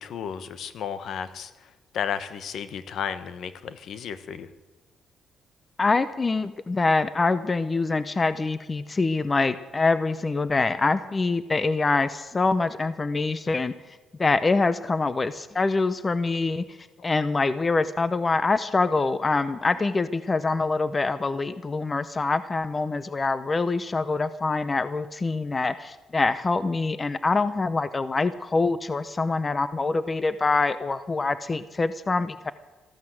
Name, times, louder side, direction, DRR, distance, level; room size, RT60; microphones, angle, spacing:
voice 1, 0.0-1.5 1.9-4.5, left 8 dB, 70° left, 13 dB, 1.1 m, -33 dB
voice 2, 5.8-32.5, left 3 dB, 25° left, 14 dB, 0.7 m, -25 dB
14.0 x 13.0 x 7.7 m, 1.2 s
cardioid pair, 90°, 0 cm